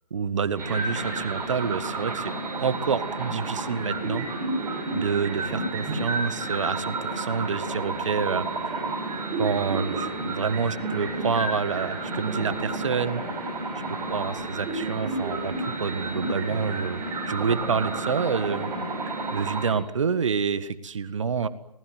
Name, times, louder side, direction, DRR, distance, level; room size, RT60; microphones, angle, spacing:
voice 1, 0.1-4.3 4.9-8.9 9.4-13.2 13.9-18.7 19.3-21.5, right 5 dB, 50° right, 13 dB, 1.7 m, -28 dB
sound 1, 0.5-19.7, right 2 dB, 10° right, 7.6 m, -31 dB
27.0 x 20.0 x 9.4 m, 0.81 s
figure-of-eight pair, 150°, 21 cm